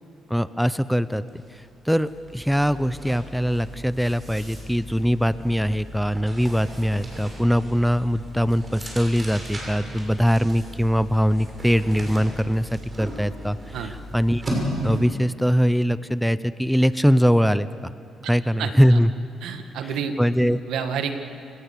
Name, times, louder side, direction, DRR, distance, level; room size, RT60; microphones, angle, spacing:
voice 1, 0.3-1.2 1.5-14.4 14.8-17.9 18.3-19.1 20.2-20.6, equal, ahead, 15 dB, 0.6 m, -22 dB
sound 1, 1.3-1.5 1.8-15.2, equal, 30° right, 6.2 m, -35 dB
voice 2, 18.6-19.0 19.4-20.2 20.7-21.1, right 7 dB, 85° right, 7 dB, 1.7 m, -29 dB
29.0 x 19.0 x 6.8 m, 2.6 s
cardioid pair, 90°, 0 cm